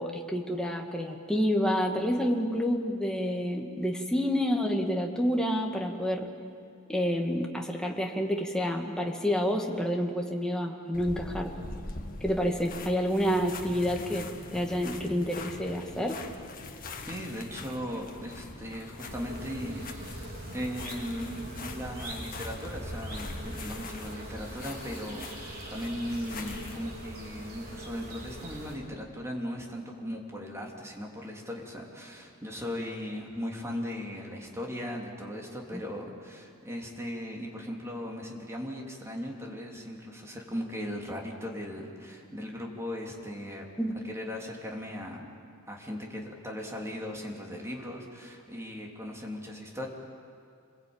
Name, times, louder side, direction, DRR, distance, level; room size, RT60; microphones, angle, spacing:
voice 1, 0.0-6.3 6.9-11.5 12.2-16.2 35.7-35.8 43.8-44.0, equal, 5° left, 1 dB, 2.1 m, -29 dB
sound 1, 10.9-26.8, left 3 dB, 40° left, 1.8 m, -43 dB
voice 2, 17.1-20.3 20.5-43.7 44.1-45.3 45.7-49.9, equal, 15° right, -1 dB, 3.3 m, -38 dB
sound 2, 19.0-28.8, right 1 dB, 45° right, 4.7 m, -42 dB
27.5 x 21.5 x 9.0 m, 2.4 s
head